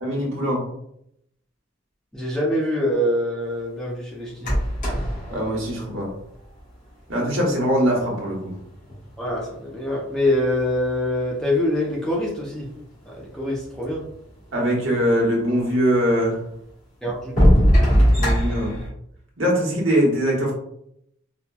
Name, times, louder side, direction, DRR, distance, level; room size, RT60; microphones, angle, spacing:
voice 1, 0.0-0.6 5.3-6.1 7.1-8.5 14.5-16.4 18.1-18.8 19.4-20.5, equal, 70° right, -2 dB, 1.1 m, -22 dB
voice 2, 2.1-4.5 9.2-12.7 13.1-14.0 17.0-17.6, left 1 dB, 5° left, -5 dB, 0.5 m, -24 dB
sound 1, 4.4-6.7 7.7-7.8 8.4-9.6 10.2-11.0 11.8-11.9 12.1-12.2 12.8-12.9 13.2-14.0 15.6-15.7 16.3-16.4 17.0-18.9, equal, 40° left, 1.3 m, -20 dB
4.1 x 2.2 x 2.3 m, 0.74 s
head